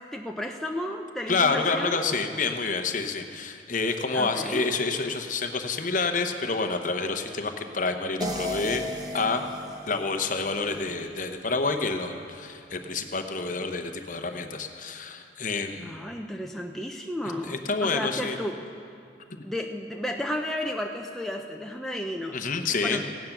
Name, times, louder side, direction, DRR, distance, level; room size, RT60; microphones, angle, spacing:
voice 1, 0.1-2.0 4.1-4.6 15.8-18.5 19.4-22.4 22.8-23.0, left 1 dB, ahead, 1 dB, 0.5 m, -33 dB
voice 2, 1.3-8.8 9.1-9.4 9.9-16.0 17.4-18.4 22.3-23.0, left 4 dB, 45° left, 6 dB, 0.8 m, -28 dB
sound 1, 8.2-11.3, left 1 dB, 20° right, 0.8 m, -35 dB
16.5 x 9.3 x 5.9 m, 2.5 s
head